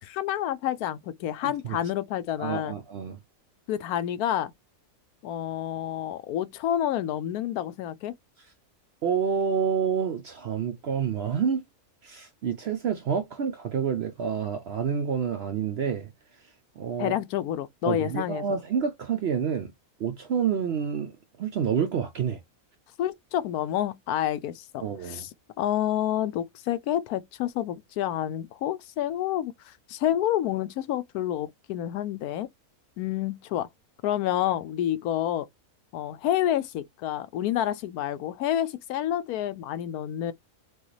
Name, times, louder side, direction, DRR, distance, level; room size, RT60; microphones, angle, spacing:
voice 1, 0.0-2.8 3.7-4.5 5.2-8.1 17.0-18.6 23.0-25.3 25.6-32.5 33.0-33.7 34.0-35.5 35.9-40.3, left 11 dB, 85° left, 1.1 m, -29 dB
voice 2, 2.4-3.2 9.0-11.6 12.0-16.1 16.8-17.1 17.8-19.7 20.0-21.1 21.4-22.4 24.8-25.3, right 7 dB, 65° right, 0.6 m, -28 dB
6.1 x 2.3 x 3.1 m
omnidirectional pair, 1.6 m